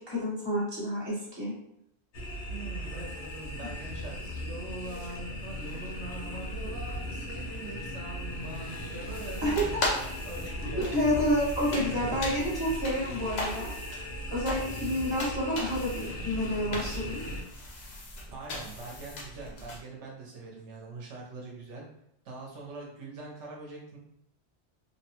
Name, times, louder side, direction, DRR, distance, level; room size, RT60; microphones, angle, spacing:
voice 1, 0.0-1.5 9.4-9.8 10.6-13.7 14.3-17.2, equal, 25° right, -7 dB, 1.1 m, -29 dB
sound 1, 2.1-17.4, equal, 75° left, 0.9 m, -38 dB
voice 2, 2.5-9.8 10.2-11.0 12.1-12.2 18.3-21.8 22.2-24.0, right 2 dB, 80° right, -2 dB, 1.0 m, -43 dB
sound 2, 9.1-19.8, left 1 dB, 50° left, 0.6 m, -39 dB
2.8 x 2.1 x 2.8 m, 0.75 s
omnidirectional pair, 1.2 m